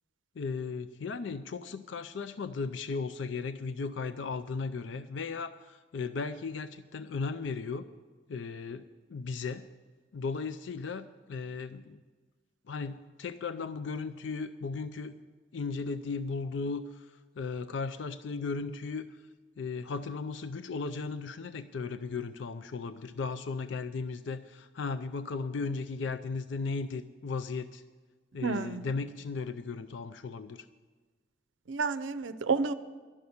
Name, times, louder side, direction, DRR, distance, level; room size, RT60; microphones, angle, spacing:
voice 1, 0.4-7.9 8.3-9.7 10.1-12.0 12.7-15.1 15.5-19.2 19.6-27.8 28.3-30.7, left 4 dB, 75° left, 12 dB, 0.4 m, -36 dB
voice 2, 28.4-28.8 31.7-32.7, right 4 dB, 85° right, 11 dB, 0.5 m, -30 dB
11.5 x 7.0 x 9.3 m, 1.4 s
head